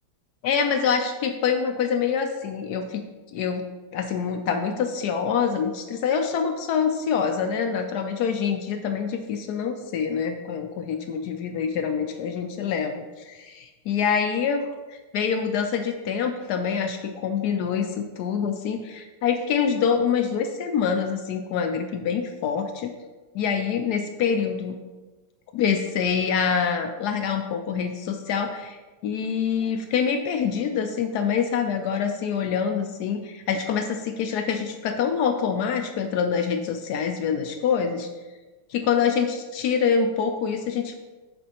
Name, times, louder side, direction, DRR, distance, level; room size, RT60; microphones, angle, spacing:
voice 1, 0.4-3.0 3.3-3.7 3.9-22.9 23.3-24.8 25.5-28.8 29.0-38.1 38.7-40.9, left 6 dB, 75° left, 6 dB, 0.9 m, -25 dB
11.0 x 4.3 x 2.9 m, 1.2 s
omnidirectional pair, 2.2 m